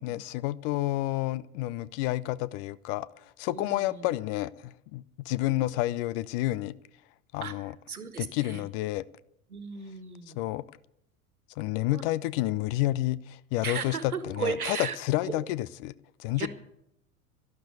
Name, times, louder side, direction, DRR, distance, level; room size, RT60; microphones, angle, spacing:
voice 1, 0.0-6.7 7.3-7.7 8.2-9.0 10.4-10.6 11.6-15.9 16.2-16.5, left 16 dB, 40° left, 0.6 m, -30 dB
voice 2, 3.5-4.1 7.4-8.6 9.5-10.4 11.9-12.0 13.6-15.0 15.3-15.5 16.4-16.5, right 6 dB, 80° right, 1.6 m, -36 dB
12.0 x 12.0 x 8.2 m
figure-of-eight pair, 80°, 43 cm